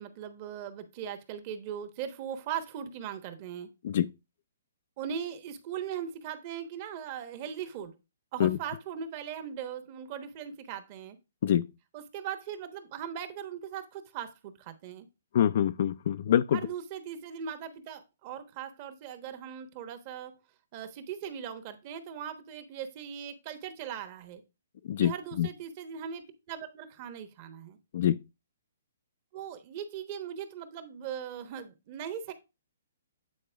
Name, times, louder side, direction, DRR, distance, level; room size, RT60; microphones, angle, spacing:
voice 1, 0.0-3.7 5.0-8.0 8.3-11.2 11.9-15.1 16.5-20.3 20.7-24.4 25.0-27.8 29.3-32.3, right 8 dB, 35° right, 1.1 m, -39 dB
voice 2, 15.3-16.6 24.9-25.1 25.4-25.5 27.9-28.2, left 10 dB, 55° left, 0.3 m, -25 dB
8.5 x 4.2 x 3.4 m
hypercardioid pair, 145°, 0 cm